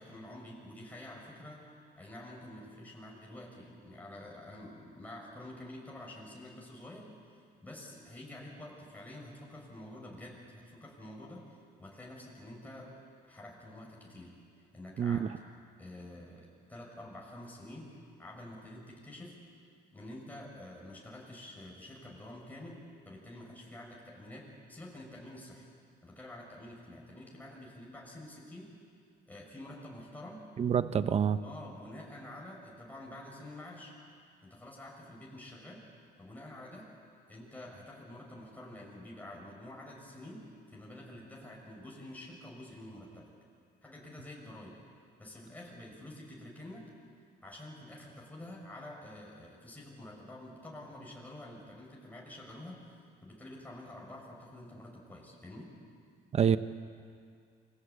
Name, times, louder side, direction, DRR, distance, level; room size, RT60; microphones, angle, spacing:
voice 1, 0.0-1.6 2.0-13.0 13.2-14.4 14.7-15.2 15.8-19.4 19.9-25.6 26.0-28.7 29.3-30.4 31.4-34.0 34.4-35.8 36.2-36.9 37.3-43.3 43.8-44.8 45.2-46.9 47.4-55.7, left 1 dB, 10° left, -3 dB, 6.4 m, -48 dB
voice 2, 15.0-15.3 30.6-31.4 56.3-56.6, right 8 dB, 40° right, 11 dB, 0.9 m, -27 dB
28.5 x 23.5 x 8.5 m, 2.2 s
cardioid pair, 110°, 17 cm